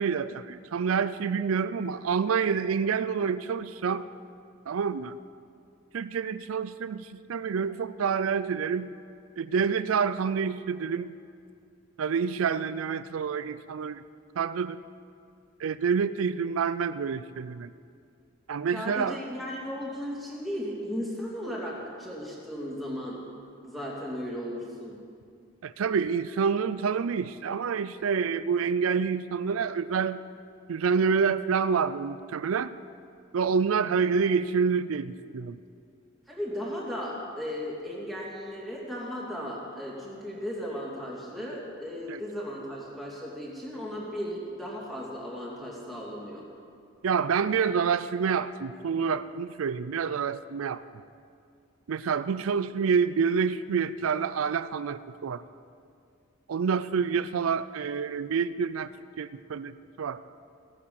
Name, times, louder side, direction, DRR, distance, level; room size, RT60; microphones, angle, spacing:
voice 1, 0.0-4.1 4.7-5.2 5.9-8.9 9.4-11.1 12.0-14.0 14.4-14.8 15.6-17.7 18.5-19.2 25.6-30.2 30.7-32.8 33.3-35.6 42.1-42.2 47.0-50.8 51.9-55.4 56.5-58.9 59.2-60.2, right 6 dB, 85° right, 14 dB, 0.4 m, -27 dB
voice 2, 18.7-23.2 23.6-24.9 36.3-46.5, equal, ahead, -4 dB, 2.7 m, -36 dB
16.0 x 9.6 x 7.1 m, 2.3 s
head